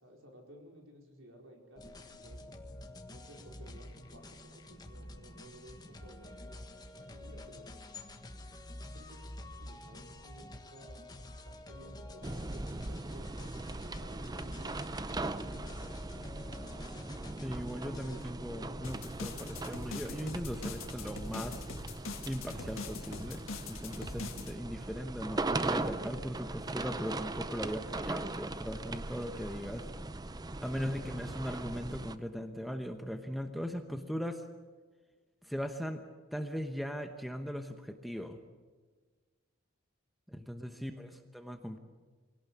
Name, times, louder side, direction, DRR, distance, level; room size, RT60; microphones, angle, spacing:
voice 1, 0.0-2.4 3.1-7.7 8.9-11.1 11.4-16.6 17.6-18.3 30.9-31.0 40.8-41.1, right 1 dB, 65° right, 1 dB, 4.6 m, -56 dB
sound 1, 1.8-18.2, left 1 dB, 20° left, 1.4 m, -49 dB
sound 2, 12.2-32.2, right 2 dB, 20° right, 0.6 m, -39 dB
voice 2, 17.4-21.7 22.2-23.4 23.7-29.9 30.6-34.4 35.4-36.0 36.3-38.4 40.3-41.8, equal, ahead, 6 dB, 1.0 m, -39 dB
sound 3, 18.8-24.5, left 4 dB, 70° left, 1.8 m, -43 dB
23.5 x 17.5 x 8.5 m, 1.4 s
head